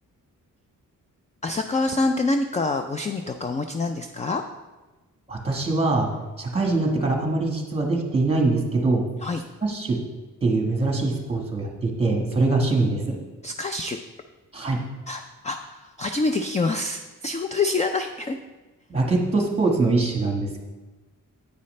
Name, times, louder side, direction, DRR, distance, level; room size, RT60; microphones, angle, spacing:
voice 1, 1.4-4.4 9.2-9.4 13.4-14.0 15.1-18.4, left 3 dB, 20° left, 6 dB, 0.3 m, -26 dB
voice 2, 5.3-6.1 6.4-9.0 9.6-10.0 10.4-13.2 14.5-14.8 18.9-20.6, right 3 dB, 20° right, 1 dB, 1.4 m, -23 dB
9.7 x 8.4 x 3.2 m, 1.2 s
wide cardioid pair, 155°, 33 cm